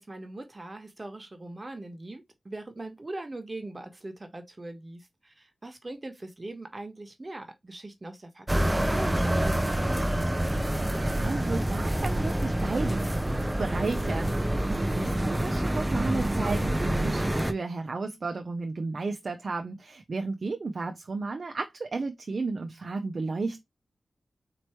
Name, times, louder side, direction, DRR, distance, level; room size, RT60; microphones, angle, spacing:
voice 1, 0.0-10.1 14.7-15.1, right 2 dB, 35° right, 1.2 m, -41 dB
sound 1, 8.5-17.5, right 1 dB, 15° right, 0.6 m, -27 dB
voice 2, 10.9-13.1 13.6-14.4 15.2-23.6, right 3 dB, 65° right, 0.6 m, -33 dB
4.4 x 3.0 x 3.0 m
cardioid pair, 50°, 0 cm